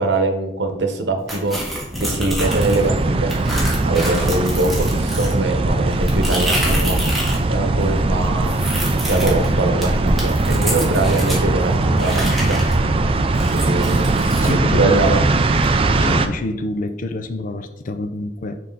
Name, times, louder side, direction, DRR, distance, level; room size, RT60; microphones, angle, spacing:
voice 1, 0.0-1.6 2.0-3.4 3.8-7.0 7.4-8.5 9.1-12.6 13.5-14.1 14.4-15.2, right 2 dB, 85° right, 0.9 m, -22 dB
sound 1, 1.3-2.9 3.3-7.4 7.7-11.4 12.0-14.5, equal, ahead, 1.7 m, -26 dB
sound 2, 2.4-16.3, right 2 dB, 30° right, 0.4 m, -20 dB
voice 2, 14.4-15.3 15.6-18.6, left 2 dB, 50° left, 0.5 m, -27 dB
6.3 x 4.0 x 3.9 m
head